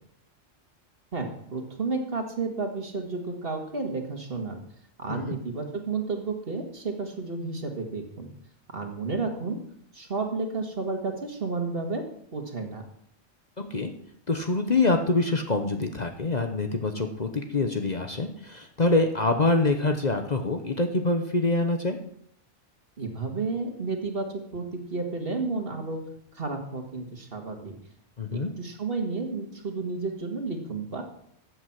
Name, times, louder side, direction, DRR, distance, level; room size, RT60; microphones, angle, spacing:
voice 1, 1.1-4.6 5.0-8.3 8.7-9.6 9.9-12.0 12.3-12.8 23.0-26.0 26.3-27.8 28.3-31.0, right 3 dB, 50° right, 4 dB, 2.0 m, -31 dB
voice 2, 14.3-22.0 28.2-28.5, left 2 dB, 40° left, 6 dB, 1.0 m, -25 dB
14.0 x 8.0 x 5.9 m, 0.72 s
omnidirectional pair, 1.3 m